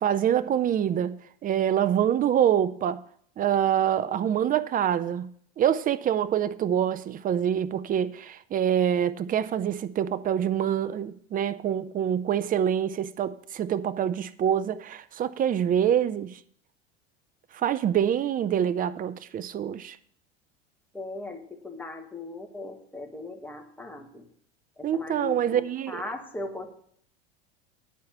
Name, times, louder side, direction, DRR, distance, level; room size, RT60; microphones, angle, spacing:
voice 1, 0.0-3.0 3.4-5.3 5.6-16.4 17.5-20.0 24.8-26.0, right 9 dB, 25° right, 0.5 m, -25 dB
voice 2, 20.9-24.3 24.8-26.7, left 2 dB, 5° left, 1.6 m, -38 dB
9.3 x 4.8 x 7.2 m
hypercardioid pair, 90°, 31 cm